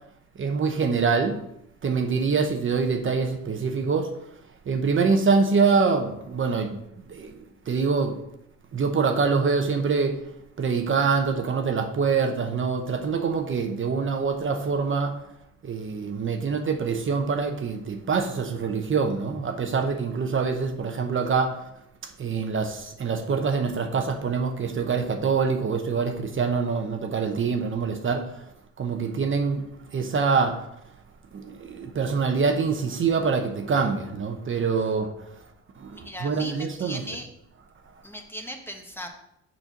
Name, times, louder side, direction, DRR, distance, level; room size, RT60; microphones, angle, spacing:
voice 1, 0.4-1.4 1.8-4.1 4.7-6.8 7.1-8.2 8.7-10.2 10.6-15.2 15.6-21.7 22.0-28.4 28.8-29.6 29.9-30.7 31.3-35.1 35.8-37.2, right 5 dB, 40° right, 5 dB, 0.9 m, -25 dB
voice 2, 35.9-37.3 38.0-39.1, equal, 5° left, 3 dB, 1.2 m, -38 dB
6.7 x 4.4 x 5.8 m, 0.79 s
cardioid pair, 90°, 30 cm